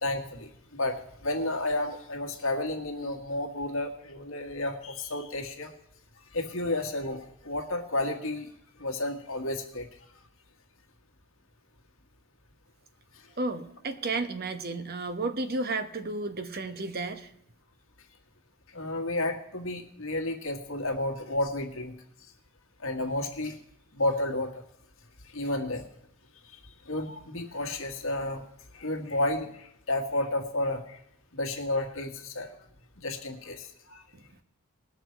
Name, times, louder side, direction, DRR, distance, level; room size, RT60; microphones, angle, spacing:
voice 1, 0.0-5.7 6.3-8.5 8.8-9.9 18.7-21.9 22.8-23.6 23.9-24.5 25.3-25.8 26.4-26.6 26.8-28.4 28.7-31.0 31.3-32.5 33.0-34.0, left 2 dB, 70° left, 4 dB, 1.7 m, -31 dB
voice 2, 13.4-17.3 34.1-34.2, right 3 dB, 45° right, 8 dB, 1.0 m, -32 dB
20.0 x 6.6 x 4.5 m, 0.75 s
head